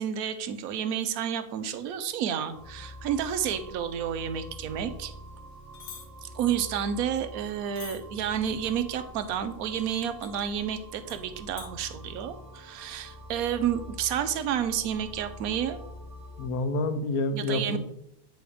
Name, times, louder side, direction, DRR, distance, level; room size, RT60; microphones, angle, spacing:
voice 1, 0.0-5.1 6.2-15.8 17.3-17.8, right 9 dB, 65° right, 9 dB, 1.0 m, -30 dB
sound 1, 2.5-16.5, equal, 30° right, 0.8 m, -45 dB
sound 2, 5.7-6.1 7.8-8.0 10.2-10.3 11.1-11.2 11.6-11.7, left 7 dB, 90° left, 1.6 m, -43 dB
voice 2, 16.4-17.8, left 2 dB, 65° left, 9 dB, 1.2 m, -28 dB
9.1 x 3.1 x 5.0 m, 0.77 s
omnidirectional pair, 1.9 m